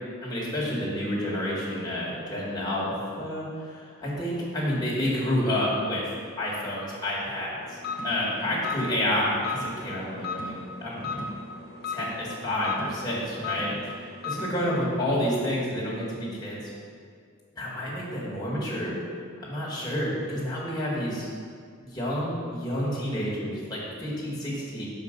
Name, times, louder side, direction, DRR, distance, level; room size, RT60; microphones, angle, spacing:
voice 1, 0.2-2.9 3.2-7.8 8.0-10.5 10.8-11.3 11.9-13.8 14.2-16.6 17.5-19.0 19.4-21.3 21.8-24.8, left 1 dB, 20° left, -7 dB, 1.9 m, -29 dB
sound 1, 7.6-14.9, left 3 dB, 55° left, 1.0 m, -36 dB
5.9 x 5.0 x 5.2 m, 2.1 s
head